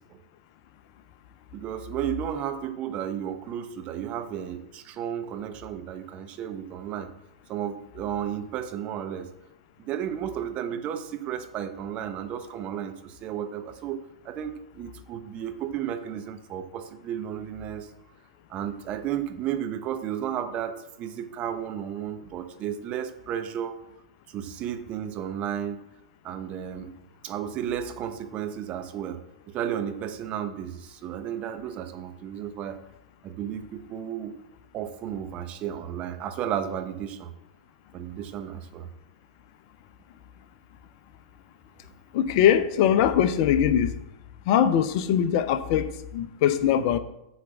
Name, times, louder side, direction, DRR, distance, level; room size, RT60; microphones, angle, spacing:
voice 1, 1.5-7.1 7.5-9.3 9.8-14.0 14.2-17.9 18.5-23.8 24.3-25.8 26.2-26.9 27.2-29.2 29.5-32.8 33.2-34.4 34.7-37.3 37.9-38.9, right 9 dB, 35° right, 7 dB, 1.0 m, -33 dB
voice 2, 42.1-43.9 44.5-47.0, left 9 dB, 50° left, 12 dB, 0.7 m, -22 dB
8.4 x 4.5 x 7.2 m, 0.86 s
figure-of-eight pair, 100°, 4 cm